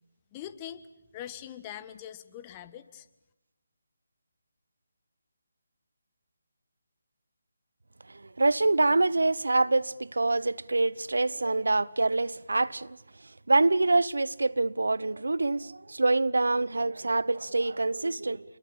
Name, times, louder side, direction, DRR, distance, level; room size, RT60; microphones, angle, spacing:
voice 1, 0.3-0.8 1.1-3.1, left 11 dB, 20° left, 1.5 m, -42 dB
voice 2, 8.4-13.0 13.5-18.4, right 2 dB, 75° right, 0.9 m, -25 dB
28.5 x 22.0 x 8.7 m
figure-of-eight pair, 155°, 0 cm